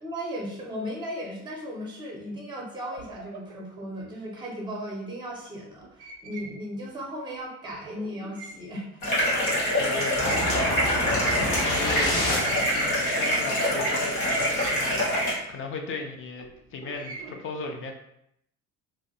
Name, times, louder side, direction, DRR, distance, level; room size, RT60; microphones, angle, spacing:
voice 1, 0.0-9.0, equal, 10° right, -2 dB, 0.7 m, -36 dB
sound 1, 2.9-4.1 5.8-6.6 6.8-6.9 7.7-8.7 9.2-9.3 9.5-9.8 10.1-11.0 12.0-12.9 13.6-14.1 14.4-15.6 16.4-17.4, right 4 dB, 55° right, 0.5 m, -42 dB
sound 2, 9.0-15.3, equal, 80° left, 0.9 m, -25 dB
voice 2, 9.7-17.9, left 4 dB, 30° left, 3 dB, 0.4 m, -37 dB
sound 3, 10.2-12.8, left 1 dB, 50° left, 0.9 m, -28 dB
2.5 x 2.0 x 2.6 m, 0.75 s
figure-of-eight pair, 55°, 43 cm